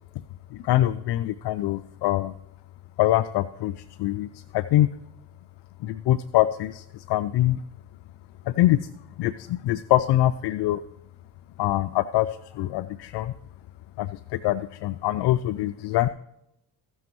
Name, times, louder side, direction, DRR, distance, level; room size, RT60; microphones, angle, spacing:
voice 1, 0.5-2.3 3.0-4.9 5.8-7.6 8.5-8.9 9.2-10.8 11.6-13.3 14.0-16.1, left 14 dB, 60° left, 13 dB, 0.5 m, -24 dB
15.5 x 6.1 x 3.1 m, 0.83 s
hypercardioid pair, 55°, 47 cm